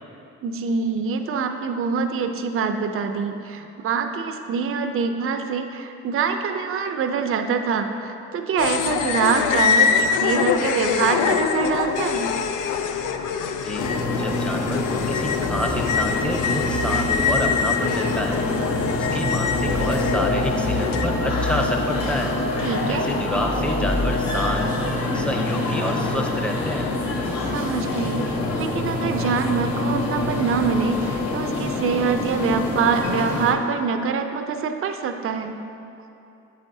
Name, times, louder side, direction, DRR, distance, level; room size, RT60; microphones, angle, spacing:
voice 1, 0.4-12.4 22.6-23.1 27.5-35.5, right 5 dB, 45° right, 6 dB, 0.5 m, -25 dB
sound 1, 8.6-21.1, left 6 dB, 90° left, 0.5 m, -24 dB
voice 2, 13.6-18.5 18.8-22.4 22.9-26.9, equal, 5° left, 2 dB, 0.7 m, -29 dB
sound 2, 13.8-33.5, left 2 dB, 60° left, 1.0 m, -25 dB
Alarm, 18.0-25.1, left 2 dB, 45° left, 0.5 m, -32 dB
8.3 x 8.0 x 2.7 m, 2.8 s
cardioid pair, 90°, 30 cm